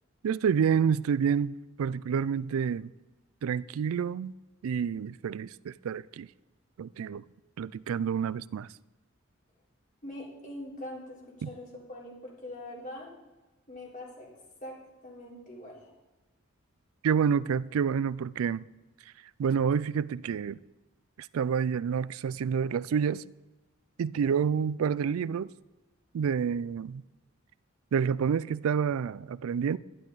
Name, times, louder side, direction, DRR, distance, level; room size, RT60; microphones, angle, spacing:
voice 1, 0.2-2.9 3.4-4.3 4.6-6.3 6.8-7.2 7.6-8.7 11.4-11.5 17.0-18.6 19.4-20.6 21.2-23.2 24.0-25.5 26.1-27.0 27.9-29.8, right 7 dB, 85° right, 0.3 m, -28 dB
voice 2, 10.0-13.1 13.7-14.3 14.6-14.7 15.0-15.9, left 1 dB, 40° left, 3.7 m, -43 dB
11.5 x 11.0 x 4.0 m
head